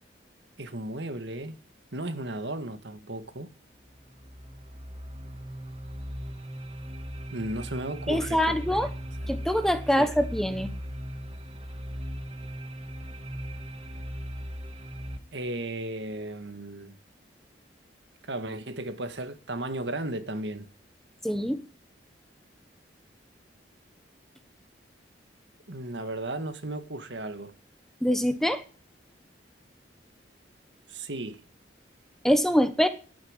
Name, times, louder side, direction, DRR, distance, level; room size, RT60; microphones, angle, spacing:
voice 1, 0.6-1.5 1.9-3.5 7.3-8.8 9.2-9.3 10.0-10.1 15.3-17.0 18.3-20.7 25.7-27.5 30.9-31.4, right 1 dB, 75° right, 1.8 m, -35 dB
sound 1, 3.8-15.2, equal, 30° right, 1.8 m, -38 dB
voice 2, 8.1-8.9 9.3-10.7 21.2-21.6 28.0-28.6 32.2-32.9, equal, ahead, 1.1 m, -24 dB
12.0 x 9.8 x 8.8 m
head